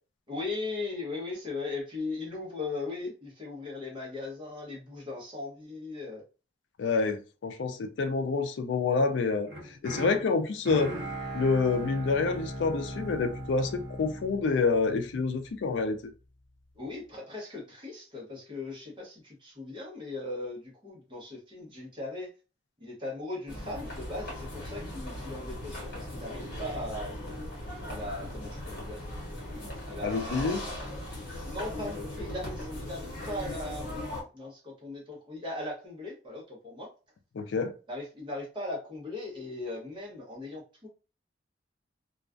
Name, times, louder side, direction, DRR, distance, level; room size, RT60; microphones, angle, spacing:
voice 1, 0.3-6.2 16.7-22.3 22.8-27.2 27.9-29.0 29.8-31.0 31.4-36.9 37.9-40.9, left 2 dB, 25° right, 0.8 m, -38 dB
voice 2, 6.8-10.9 11.3-16.0 30.0-30.6 37.3-37.7, left 4 dB, 75° left, 0.4 m, -28 dB
sound 1, 9.5-15.6, right 1 dB, 60° right, 0.9 m, -39 dB
sound 2, 23.5-34.2, left 1 dB, 60° left, 1.1 m, -38 dB
2.3 x 2.2 x 2.3 m
head